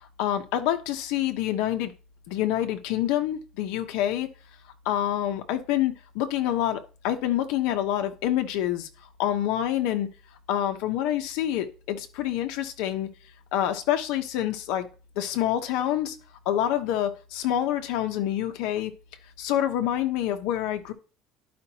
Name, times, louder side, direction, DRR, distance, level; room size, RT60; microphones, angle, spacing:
voice 1, 0.2-1.9 2.3-4.3 4.8-8.9 9.2-10.1 10.5-13.1 13.5-14.9 15.2-16.1 16.4-18.9 19.4-20.9, left 11 dB, 75° left, 1.0 m, -27 dB
11.5 x 5.2 x 2.9 m
cardioid pair, 165°, 0 cm